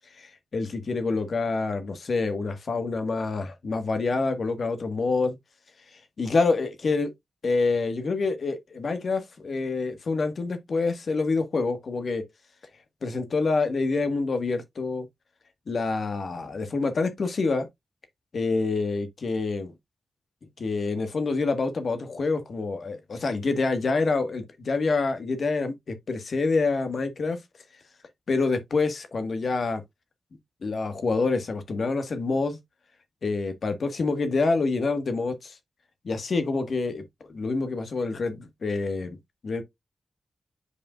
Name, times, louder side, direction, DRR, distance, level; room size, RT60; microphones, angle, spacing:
voice 1, 0.2-5.4 6.2-7.1 7.4-12.2 13.0-15.1 15.7-17.7 18.3-19.7 20.6-27.4 28.3-29.8 30.6-32.6 33.2-35.6 36.0-39.2 39.4-39.6, left 3 dB, 70° left, 1.5 m, -27 dB
8.4 x 5.0 x 2.4 m
wide cardioid pair, 95°, 0 cm